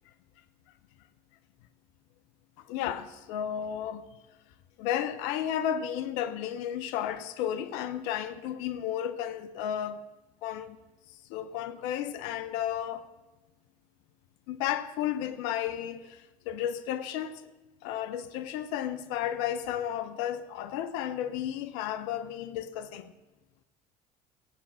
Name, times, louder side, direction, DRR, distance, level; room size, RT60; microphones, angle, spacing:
voice 1, 2.6-4.1 4.8-10.1 10.4-10.8 11.3-13.0 14.5-17.4 17.8-23.1, left 10 dB, 75° left, 0.8 m, -33 dB
16.5 x 8.6 x 6.2 m
hypercardioid pair, 70°, 20 cm